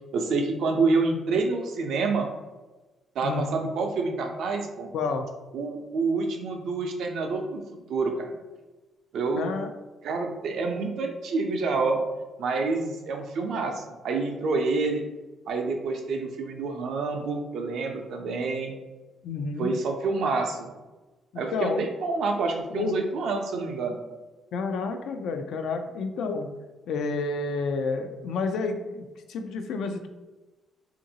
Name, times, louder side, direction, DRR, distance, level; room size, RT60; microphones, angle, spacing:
voice 1, 0.1-2.3 3.2-4.9 5.5-7.6 7.9-8.4 9.1-9.5 10.0-12.0 12.4-15.0 15.5-18.8 19.6-20.7 21.4-24.0, right 3 dB, 75° right, 3 dB, 0.4 m, -27 dB
voice 2, 3.2-3.7 4.9-5.3 9.4-9.7 19.2-19.7 21.3-21.8 22.7-22.9 24.5-26.5 26.9-30.1, left 4 dB, 75° left, 6 dB, 0.3 m, -30 dB
2.9 x 2.5 x 2.7 m, 1.2 s
cardioid pair, 90°, 0 cm